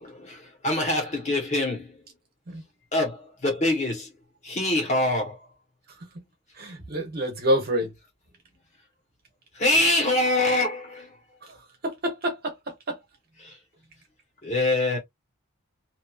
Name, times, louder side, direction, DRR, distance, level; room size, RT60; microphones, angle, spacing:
voice 1, 0.0-1.9 2.9-4.1 4.4-5.4 9.6-11.1 13.4-13.5 14.4-15.0, left 2 dB, 30° left, 1.2 m, -24 dB
voice 2, 6.6-7.9 11.8-13.0, equal, 45° right, 1.1 m, -27 dB
3.0 x 2.7 x 2.4 m
head